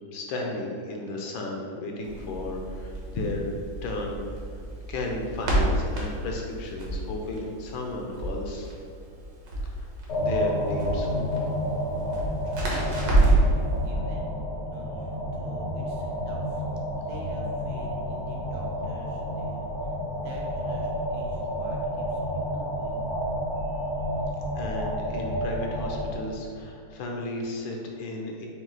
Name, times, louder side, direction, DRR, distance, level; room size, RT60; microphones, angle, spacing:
voice 1, 0.1-3.5 3.8-4.2 4.5-8.7 9.6-11.3 23.6-23.9 24.6-28.5, left 2 dB, 75° left, 1 dB, 1.3 m, -34 dB
Crackle, 2.0-13.6, right 2 dB, 60° right, 1.3 m, -28 dB
sound 1, 10.1-26.2, equal, 55° left, 0.8 m, -30 dB
voice 2, 12.1-16.6 16.9-23.1, right 1 dB, 85° right, -2 dB, 0.6 m, -46 dB
5.9 x 2.3 x 3.9 m, 2.3 s
omnidirectional pair, 2.2 m